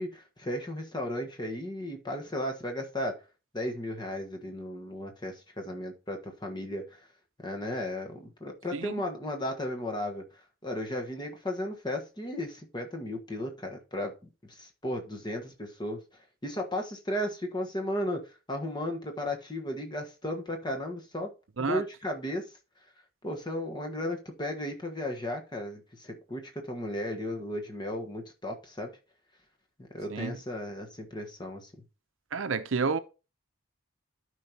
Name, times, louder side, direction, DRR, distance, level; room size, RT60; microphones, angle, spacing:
voice 1, 0.0-3.2 3.5-7.0 7.4-10.2 10.6-14.1 14.4-16.0 16.4-21.3 21.6-22.4 23.2-28.9 29.8-31.7, left 1 dB, 20° left, 1.3 m, -35 dB
voice 2, 32.3-33.0, right 5 dB, 65° right, 0.7 m, -29 dB
13.0 x 4.8 x 2.8 m
head